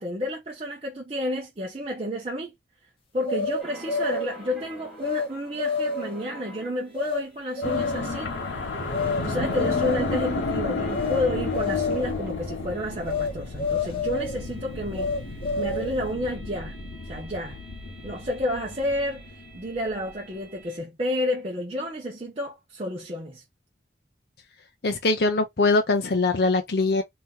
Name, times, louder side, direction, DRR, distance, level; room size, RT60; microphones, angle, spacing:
voice 1, 0.0-2.5 3.1-8.3 9.2-15.1 15.6-16.7 17.1-17.6 18.0-23.4, left 1 dB, 30° right, 0.8 m, -30 dB
sound 1, 3.2-4.4 5.0-5.3 5.6-6.2 7.0-7.2 7.6-8.1 8.9-9.2 9.5-10.2 10.9-11.2 11.5-12.1 13.1-13.3 13.6-14.4 14.9-16.0, left 4 dB, 30° left, 0.9 m, -28 dB
sound 2, 3.6-12.3 12.6-20.8, right 2 dB, ahead, 1.1 m, -48 dB
sound 3, 7.6-20.2, left 3 dB, 90° left, 0.9 m, -32 dB
voice 2, 24.8-27.0, left 3 dB, 60° left, 0.6 m, -22 dB
2.9 x 2.9 x 3.6 m
head